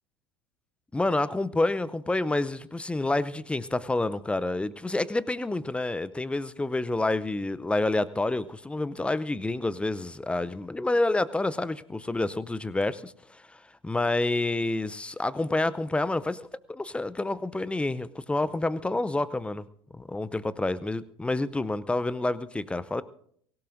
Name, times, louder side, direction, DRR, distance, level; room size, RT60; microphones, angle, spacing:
voice 1, 0.9-19.7 19.9-23.0, left 2 dB, 10° left, 18 dB, 0.6 m, -28 dB
23.5 x 16.0 x 2.6 m, 0.63 s
figure-of-eight pair, 70°, 14 cm